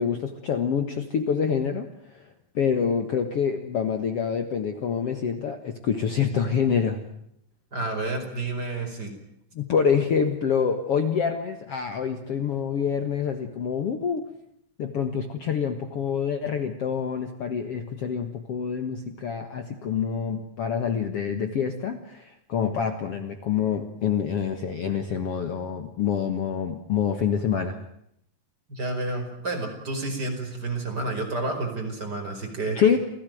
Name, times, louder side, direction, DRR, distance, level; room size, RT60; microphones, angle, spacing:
voice 1, 0.0-1.9 2.1-2.3 2.6-7.0 9.6-14.2 14.8-27.8 32.8-33.0, left 7 dB, 55° left, 8 dB, 2.1 m, -26 dB
voice 2, 7.7-9.1 28.7-32.8, right 2 dB, 30° right, 3 dB, 5.4 m, -30 dB
29.0 x 17.5 x 9.2 m, 0.75 s
omnidirectional pair, 3.9 m